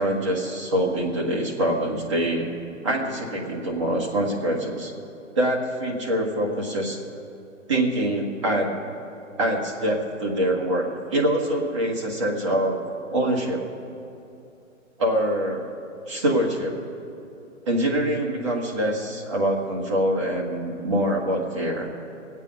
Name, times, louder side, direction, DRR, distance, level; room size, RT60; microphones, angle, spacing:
voice 1, 0.0-2.5 2.8-4.9 5.3-7.0 7.7-8.7 9.4-12.8 13.1-13.6 15.0-15.7 16.1-16.8 17.6-21.9, right 1 dB, 25° right, -2 dB, 1.3 m, -24 dB
20.5 x 8.3 x 5.3 m, 2.7 s
hypercardioid pair, 175°, 40 cm